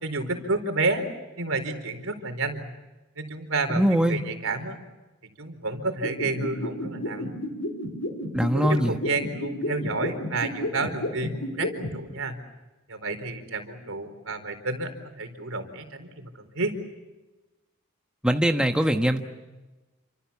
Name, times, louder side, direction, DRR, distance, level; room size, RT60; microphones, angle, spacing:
voice 1, 0.0-1.0 1.4-2.6 3.2-4.8 5.4-7.3 8.5-12.4 12.9-16.8, right 3 dB, 70° right, 7 dB, 4.4 m, -30 dB
voice 2, 3.7-4.2 8.3-8.9 18.2-19.2, equal, 5° right, 4 dB, 1.3 m, -22 dB
sound 1, 6.0-11.9, left 1 dB, 70° left, 4.9 m, -30 dB
29.5 x 26.5 x 7.1 m, 1.1 s
head